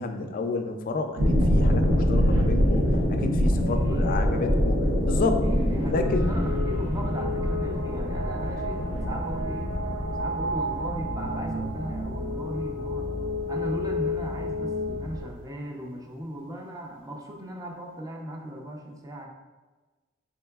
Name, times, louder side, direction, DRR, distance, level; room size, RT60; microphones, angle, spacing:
voice 1, 0.0-5.4 5.9-6.3, left 3 dB, 45° left, 6 dB, 0.3 m, -30 dB
sound 1, 1.2-13.7 14.0-14.4, equal, 75° right, 0.7 m, -25 dB
sound 2, 3.6-15.2, left 1 dB, 40° right, 1.2 m, -32 dB
voice 2, 3.7-4.3 5.4-9.7 10.2-13.1 13.5-19.3, equal, 20° right, 1 dB, 0.5 m, -37 dB
4.4 x 3.7 x 2.3 m, 1.2 s
head